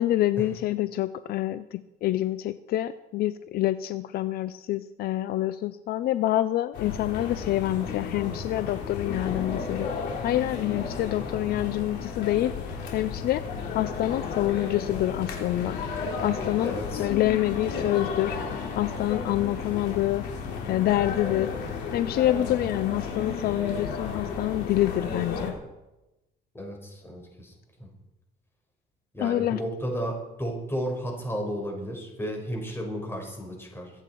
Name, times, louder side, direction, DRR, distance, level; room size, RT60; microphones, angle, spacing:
voice 1, 0.0-9.9 10.2-13.4 13.7-18.4 18.8-20.3 20.7-21.5 21.9-25.5 29.2-29.6, left 14 dB, 65° left, 14 dB, 0.5 m, -27 dB
sound 1, 6.7-25.5, left 5 dB, 80° left, 3.4 m, -33 dB
voice 2, 16.6-17.1 26.5-27.5 27.8-27.9 29.1-33.9, equal, 15° left, 1 dB, 5.2 m, -33 dB
23.5 x 8.8 x 4.6 m, 0.98 s
cardioid pair, 110°, 17 cm